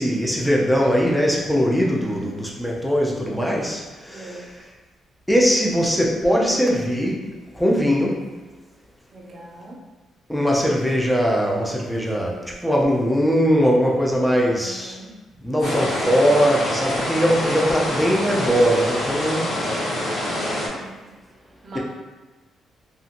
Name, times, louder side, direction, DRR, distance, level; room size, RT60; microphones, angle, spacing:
voice 1, 0.0-4.4 5.3-7.1 7.5-8.2 10.3-15.0 15.4-19.5, equal, ahead, -2 dB, 0.5 m, -20 dB
voice 2, 1.8-2.3 4.1-4.4 9.1-9.8 14.3-15.1 15.6-16.1 20.4-21.0 21.6-21.8, right 1 dB, 50° right, -3 dB, 0.7 m, -39 dB
sound 1, 15.6-20.7, left 1 dB, 60° left, 1.0 m, -26 dB
2.7 x 2.5 x 2.5 m, 1.2 s
cardioid pair, 90°, 0 cm